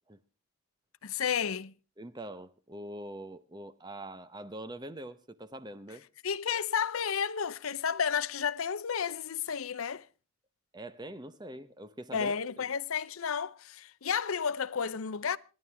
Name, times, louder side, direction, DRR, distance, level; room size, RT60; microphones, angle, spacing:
voice 1, 1.0-1.7 6.2-10.1 12.1-15.4, left 7 dB, 75° left, 0.6 m, -32 dB
voice 2, 2.0-6.0 10.7-12.7, right 1 dB, 20° right, 0.8 m, -44 dB
27.0 x 11.0 x 3.4 m
head